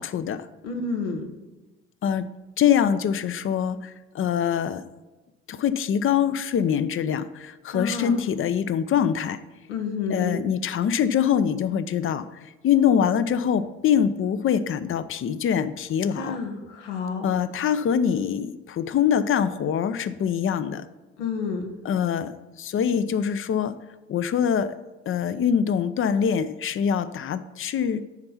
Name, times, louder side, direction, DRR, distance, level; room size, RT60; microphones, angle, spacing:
voice 1, 0.0-0.5 2.0-2.3 2.6-4.8 5.5-9.4 10.1-16.4 17.2-20.9 21.8-22.3 22.6-23.8 24.1-24.7 25.1-28.1, left 8 dB, 40° left, 13 dB, 0.6 m, -24 dB
voice 2, 0.6-1.3 7.7-8.2 9.7-10.4 16.1-17.2 21.2-21.7, left 4 dB, 85° left, 4 dB, 1.0 m, -30 dB
9.8 x 4.4 x 5.6 m, 1.1 s
hypercardioid pair, 55°, 33 cm